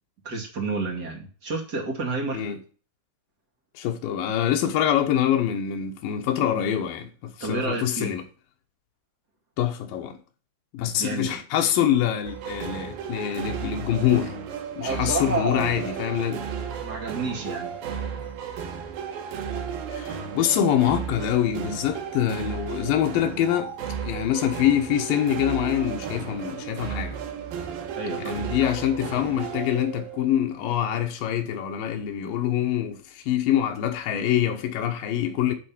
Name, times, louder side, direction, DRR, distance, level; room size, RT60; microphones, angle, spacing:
voice 1, 0.2-2.5 7.4-8.2 11.0-11.4 14.8-16.0 16.8-17.8 28.0-28.5, right 3 dB, 35° right, 2.3 m, -30 dB
voice 2, 3.7-8.2 9.6-10.2 10.7-14.4 14.8-16.4 19.9-23.7 24.0-27.2 28.2-35.6, left 10 dB, 85° left, 2.7 m, -25 dB
sound 1, 12.2-30.4, right 7 dB, 90° right, 3.2 m, -34 dB
11.0 x 3.6 x 7.1 m
omnidirectional pair, 3.9 m